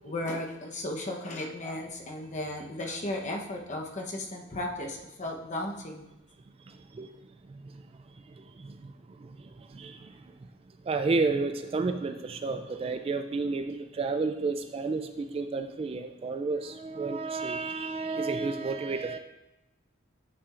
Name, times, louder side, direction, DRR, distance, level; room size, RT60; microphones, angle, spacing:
voice 1, 0.0-6.1, left 1 dB, 40° left, 1 dB, 0.9 m, -35 dB
voice 2, 10.9-19.2, right 3 dB, 30° right, 8 dB, 0.3 m, -31 dB
9.5 x 5.6 x 2.5 m, 0.97 s
head